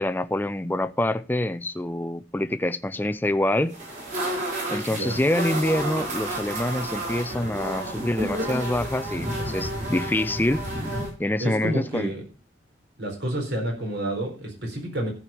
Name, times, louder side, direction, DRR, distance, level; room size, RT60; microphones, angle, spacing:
voice 1, 0.0-3.8 4.7-10.6 11.2-12.1, left 1 dB, 10° left, 0.4 m, -26 dB
sound 1, 3.7-11.1, right 1 dB, 45° right, 5.7 m, -30 dB
voice 2, 11.4-12.2 13.0-15.1, right 1 dB, 60° right, 4.3 m, -29 dB
14.0 x 5.1 x 6.9 m
head